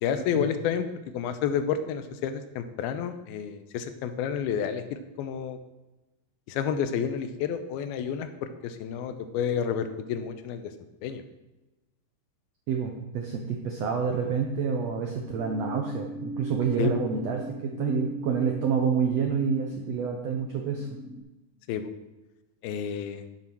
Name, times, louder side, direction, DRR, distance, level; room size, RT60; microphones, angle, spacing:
voice 1, 0.0-0.8 1.1-5.6 6.5-10.7 11.0-11.2 16.8-16.9 21.7-21.9 22.6-23.2, left 8 dB, 85° left, 9 dB, 2.6 m, -30 dB
voice 2, 12.7-20.9, right 6 dB, 80° right, 2 dB, 1.5 m, -28 dB
sound 1, 15.1-21.2, right 2 dB, 45° left, 3.6 m, -40 dB
9.2 x 7.9 x 6.1 m, 1.1 s
omnidirectional pair, 4.3 m